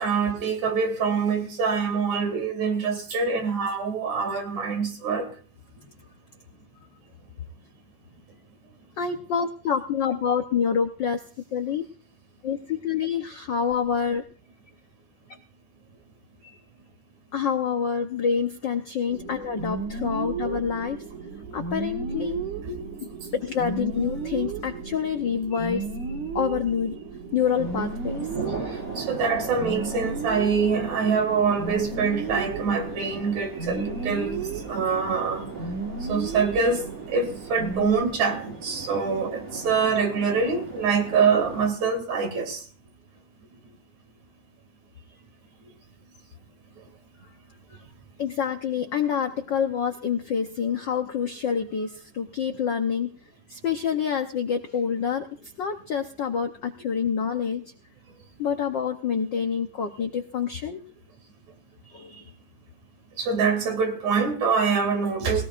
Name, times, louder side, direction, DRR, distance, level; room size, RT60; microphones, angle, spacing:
voice 1, 0.0-5.3 22.7-22.8 29.0-34.4 34.7-35.5 36.1-42.6 63.2-65.5, right 5 dB, 70° right, 3.8 m, -25 dB
voice 2, 9.0-11.2 11.5-11.8 12.4-14.2 17.3-21.0 21.5-22.4 23.3-25.8 26.3-27.0 27.3-28.3 48.2-53.1 53.5-55.3 55.6-57.6 58.4-60.8 61.9-62.2, left 7 dB, 75° left, 1.0 m, -27 dB
sound 1, 19.1-38.0, right 4 dB, 85° right, 3.2 m, -34 dB
sound 2, 27.4-41.7, right 3 dB, 50° right, 5.1 m, -38 dB
20.5 x 17.5 x 2.5 m
omnidirectional pair, 3.3 m